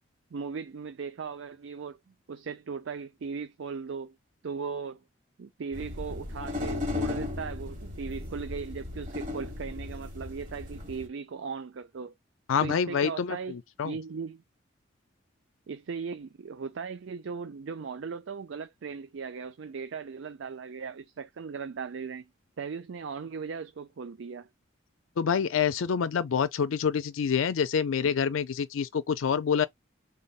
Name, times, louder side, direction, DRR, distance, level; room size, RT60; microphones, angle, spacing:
voice 1, 0.3-2.0 2.3-4.2 4.4-5.0 5.4-12.1 12.6-13.6 13.8-14.4 15.7-22.3 22.6-24.5, right 5 dB, 70° right, 0.4 m, -38 dB
sound 1, 5.7-11.1, left 2 dB, 40° right, 1.5 m, -36 dB
voice 2, 12.5-14.0 25.2-29.7, left 7 dB, 85° left, 0.4 m, -27 dB
5.4 x 3.8 x 2.4 m
head